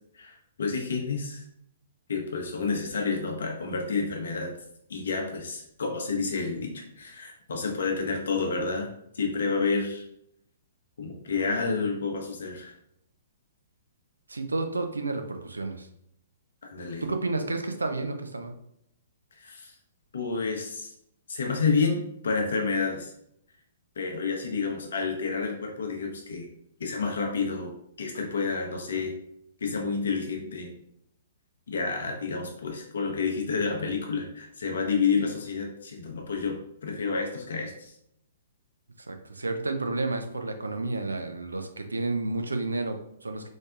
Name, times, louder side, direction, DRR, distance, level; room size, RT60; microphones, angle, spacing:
voice 1, 0.1-1.4 2.1-4.5 4.9-6.7 7.0-8.9 9.1-10.0 11.0-12.7 16.6-17.1 19.4-19.7 20.1-20.9 21.3-23.1 24.0-26.5 26.8-27.7 28.0-29.1 29.6-30.7 31.7-36.6 36.8-37.9, left 4 dB, 60° left, 1 dB, 1.0 m, -29 dB
voice 2, 14.3-15.9 17.0-18.5 39.1-43.5, right 2 dB, 75° right, 6 dB, 0.5 m, -31 dB
4.1 x 3.3 x 2.5 m, 0.73 s
figure-of-eight pair, 120°, 0 cm